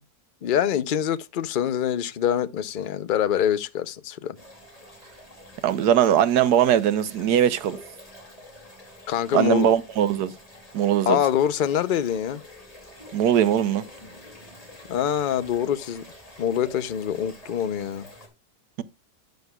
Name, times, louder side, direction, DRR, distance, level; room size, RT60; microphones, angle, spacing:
voice 1, 0.4-4.4 9.1-9.7 11.1-12.4 14.9-16.0 16.4-18.1, left 9 dB, 50° left, 0.6 m, -25 dB
sound 1, 4.4-18.3, left 1 dB, 25° left, 2.6 m, -47 dB
voice 2, 5.6-7.8 9.3-10.3 10.7-11.2 13.1-13.8, right 10 dB, 90° right, 1.4 m, -20 dB
11.5 x 9.4 x 2.3 m
omnidirectional pair, 1.6 m